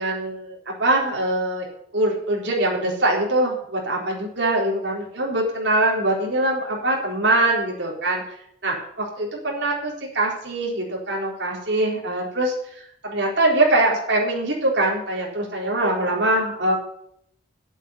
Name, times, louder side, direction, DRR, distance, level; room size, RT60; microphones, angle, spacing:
voice 1, 0.0-1.7 1.9-8.2 8.6-12.5 13.0-16.8, right 1 dB, 65° right, -3 dB, 4.1 m, -23 dB
9.5 x 8.5 x 8.3 m, 0.72 s
head